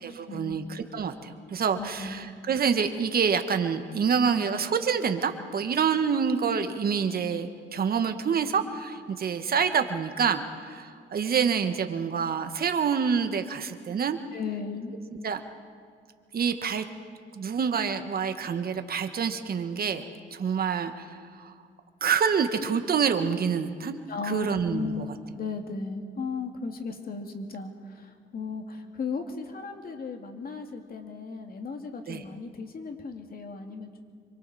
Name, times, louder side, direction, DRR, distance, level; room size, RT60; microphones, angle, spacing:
voice 1, 0.0-14.2 15.2-15.4 16.3-16.8 17.3-20.0 20.3-21.5 22.0-24.0 24.2-25.1 32.1-32.2, right 6 dB, 50° right, 7 dB, 1.5 m, -27 dB
voice 2, 1.7-2.3 14.3-14.9 24.1-34.0, left 4 dB, 50° left, 4 dB, 2.4 m, -36 dB
26.5 x 24.0 x 4.3 m, 2.2 s
cardioid pair, 90°, 20 cm